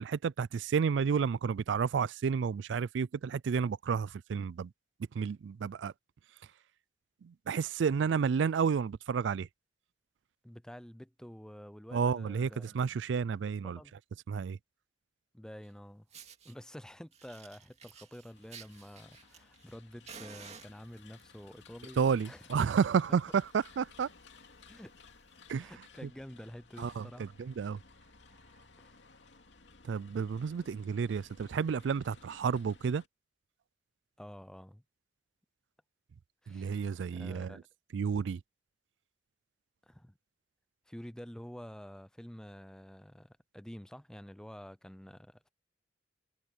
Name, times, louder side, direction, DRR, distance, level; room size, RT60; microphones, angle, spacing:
voice 1, 0.0-4.7 5.1-5.9 7.2-9.5 11.9-13.8 14.3-14.6 22.0-24.1 25.5-25.7 26.8-27.8 29.9-33.0 36.5-37.6 37.9-38.4, right 6 dB, 90° right, 0.4 m, -31 dB
voice 2, 10.4-13.0 13.5-13.9 15.3-16.1 16.4-22.6 24.7-24.9 25.6-27.3 28.8-29.0 34.2-34.8 36.4-36.7 37.1-37.7 39.9-40.2 40.9-45.5, equal, 5° left, 0.4 m, -49 dB
Fire, 15.6-15.7 16.1-16.5 17.1-19.7 20.1-21.2 22.0-22.3 22.6-22.7 23.1-23.2 23.4-23.7 24.2-24.3 25.3-25.4, right 6 dB, 40° right, 2.3 m, -52 dB
sound 1, 18.3-33.1, left 4 dB, 85° left, 2.5 m, -58 dB
head